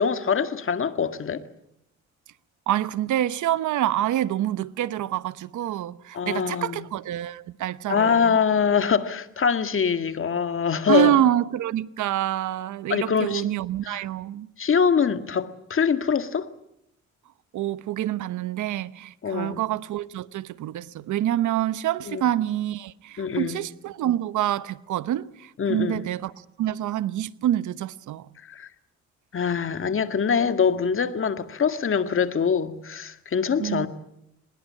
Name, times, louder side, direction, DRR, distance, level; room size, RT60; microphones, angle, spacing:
voice 1, 0.0-1.4 6.1-6.9 7.9-11.2 12.9-13.5 13.9-14.0 14.6-16.5 19.2-19.6 22.1-22.3 23.2-23.6 25.6-26.1 28.4-28.7 29.3-33.9, left 6 dB, 45° left, 1.9 m, -24 dB
voice 2, 2.7-8.4 10.9-14.5 17.5-26.3 26.6-28.3 33.6-33.9, right 12 dB, 75° right, 1.0 m, -26 dB
24.0 x 20.5 x 8.6 m
cardioid pair, 90°, 30 cm